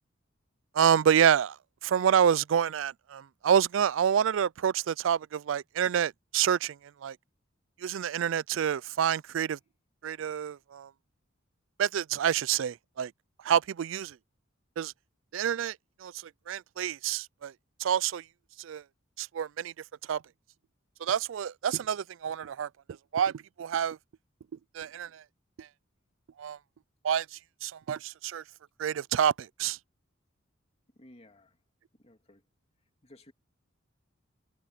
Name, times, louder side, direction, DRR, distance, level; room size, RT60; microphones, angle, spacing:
voice 1, 0.7-1.6 1.8-7.2 7.8-9.6 10.0-10.9 11.8-13.1 13.4-14.2 14.8-14.9 15.3-15.8 16.0-16.1 16.5-17.5 17.8-18.2 18.6-18.8 19.2-19.7 20.1-20.2 21.0-24.0 24.7-25.2 25.6-25.7 26.4-26.6 27.0-28.4 28.8-29.8, right 8 dB, 70° right, 0.4 m, -28 dB
voice 2, 30.9-31.6 31.9-32.4 33.0-33.3, left 1 dB, 30° left, 2.7 m, -56 dB
head